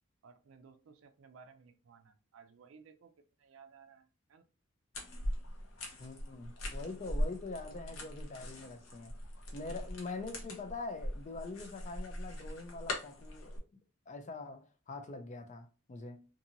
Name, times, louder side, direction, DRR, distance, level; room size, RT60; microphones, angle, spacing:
voice 1, 0.2-3.1 3.4-4.4, right 5 dB, 70° right, 0.4 m, -58 dB
sound 1, 4.9-13.6, left 1 dB, 75° left, 0.7 m, -41 dB
voice 2, 6.0-9.2 9.5-13.6 14.1-16.2, left 3 dB, 35° left, 0.4 m, -44 dB
2.7 x 2.6 x 2.6 m
head